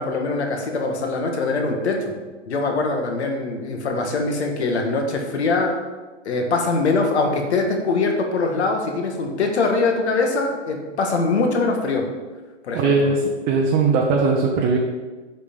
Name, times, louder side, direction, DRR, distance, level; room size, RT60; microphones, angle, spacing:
voice 1, 0.0-2.1 2.5-5.8 6.3-12.1 12.6-13.1, left 3 dB, 65° left, 3 dB, 1.8 m, -22 dB
voice 2, 12.7-14.8, right 4 dB, 25° right, -1 dB, 0.9 m, -19 dB
8.0 x 5.9 x 5.3 m, 1.3 s
figure-of-eight pair, 120°, 36 cm